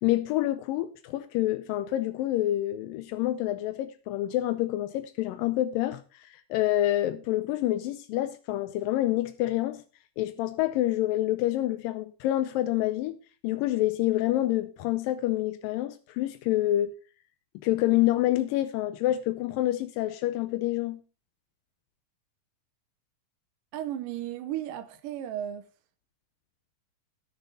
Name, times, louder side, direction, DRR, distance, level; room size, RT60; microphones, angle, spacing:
voice 1, 0.0-9.8 10.2-13.2 13.4-16.9 17.6-21.0, left 14 dB, 85° left, 2.4 m, -27 dB
voice 2, 23.7-25.7, right 11 dB, 80° right, 2.3 m, -34 dB
17.0 x 6.5 x 4.0 m
omnidirectional pair, 3.9 m